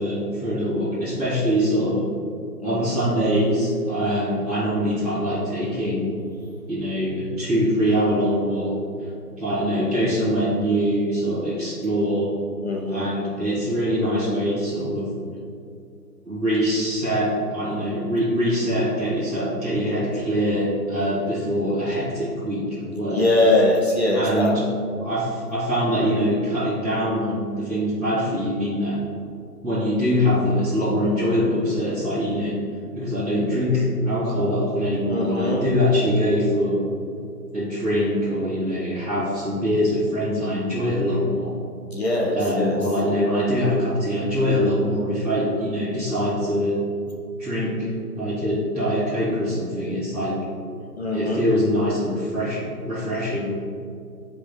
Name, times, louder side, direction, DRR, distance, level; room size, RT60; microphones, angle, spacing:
voice 1, 0.0-2.0 2.6-6.0 6.7-8.7 9.4-12.4 12.9-15.1 16.2-23.2 24.1-24.6 25.0-29.0 29.6-32.6 32.9-36.8 37.5-41.5 42.3-46.8 47.4-50.4 51.1-53.5, equal, ahead, -24 dB, 1.0 m, -23 dB
voice 2, 2.6-2.9 12.6-13.1 23.1-24.6 35.1-35.6 41.9-42.8 50.9-51.4, left 2 dB, 40° left, -1 dB, 0.7 m, -22 dB
10.0 x 5.0 x 2.4 m, 2.5 s
figure-of-eight pair, 145°, 48 cm